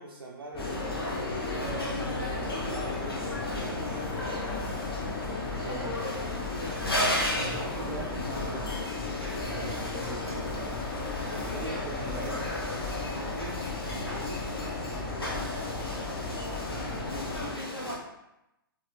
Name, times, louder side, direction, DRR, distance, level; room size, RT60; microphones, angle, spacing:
voice 1, 0.0-1.7 2.9-4.0 11.3-11.7 13.1-14.5 14.8-15.5 16.0-18.1, right 3 dB, 75° right, -2 dB, 0.4 m, -46 dB
sound 1, 0.5-17.5, left 3 dB, 30° left, 0.5 m, -36 dB
sound 2, 0.6-18.0, left 1 dB, 90° left, 0.8 m, -35 dB
voice 2, 1.6-2.7 3.1-3.6 5.2-6.1 7.3-12.7 16.7-17.1, right 2 dB, 30° right, -5 dB, 0.6 m, -42 dB
3.1 x 2.4 x 3.1 m, 0.91 s
figure-of-eight pair, 120°, 12 cm